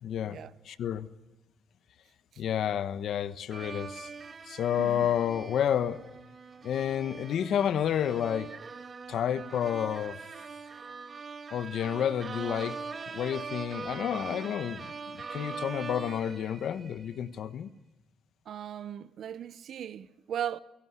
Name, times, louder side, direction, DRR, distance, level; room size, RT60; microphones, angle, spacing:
voice 1, 0.0-0.4 0.6-1.1 2.4-4.1 4.5-6.0 6.6-8.5 9.1-10.2 11.5-12.8 13.1-17.7, left 9 dB, 70° left, 1.2 m, -30 dB
sound 1, 3.5-17.2, right 5 dB, 40° right, 1.7 m, -42 dB
voice 2, 4.8-5.1 18.5-20.6, right 10 dB, 65° right, 0.9 m, -37 dB
29.0 x 17.5 x 9.7 m
cardioid pair, 90°, 0 cm